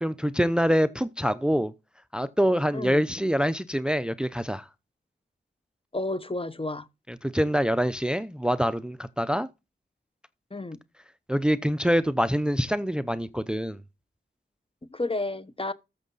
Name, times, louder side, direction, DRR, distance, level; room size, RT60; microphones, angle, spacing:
voice 1, 0.0-1.7 2.1-4.7 7.1-9.5 11.3-13.8, equal, 5° right, 0.7 m, -25 dB
voice 2, 5.9-6.9 10.5-10.8 14.9-15.7, left 2 dB, 30° left, 1.1 m, -31 dB
13.5 x 7.3 x 4.0 m
cardioid pair, 50°, 20 cm